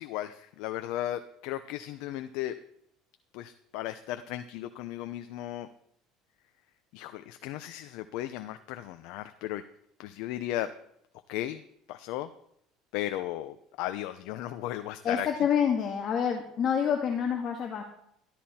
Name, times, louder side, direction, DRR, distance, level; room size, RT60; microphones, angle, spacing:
voice 1, 0.0-2.5 3.3-5.7 6.9-9.6 10.0-10.7 11.3-11.6 11.9-12.3 12.9-15.3, left 13 dB, 75° left, 9 dB, 0.8 m, -35 dB
voice 2, 15.0-17.8, left 7 dB, 45° left, 2 dB, 2.0 m, -27 dB
13.5 x 12.5 x 4.4 m, 0.71 s
cardioid pair, 125°, 0 cm